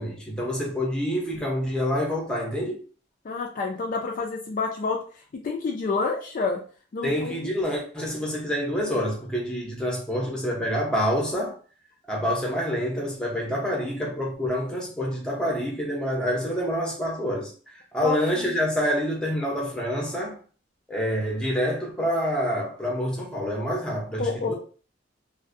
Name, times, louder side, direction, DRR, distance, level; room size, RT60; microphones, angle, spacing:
voice 1, 0.0-2.8 7.0-11.5 12.1-20.3 20.9-24.5, equal, 5° left, 0.6 m, -27 dB
voice 2, 3.2-5.0 5.3-6.6 6.9-7.5 18.0-18.5 24.2-24.5, left 4 dB, 45° left, 0.3 m, -28 dB
2.5 x 2.0 x 2.4 m
head